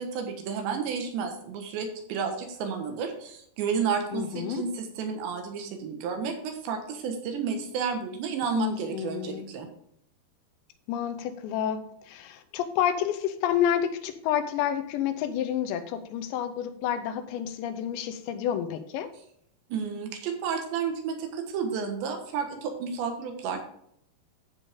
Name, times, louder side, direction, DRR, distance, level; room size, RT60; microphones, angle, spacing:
voice 1, 0.0-9.7 19.7-23.6, right 6 dB, 80° right, 3.6 m, -31 dB
voice 2, 4.1-4.6 8.6-9.5 10.9-19.1, left 9 dB, 90° left, 3.1 m, -29 dB
15.0 x 5.4 x 3.6 m
omnidirectional pair, 5.1 m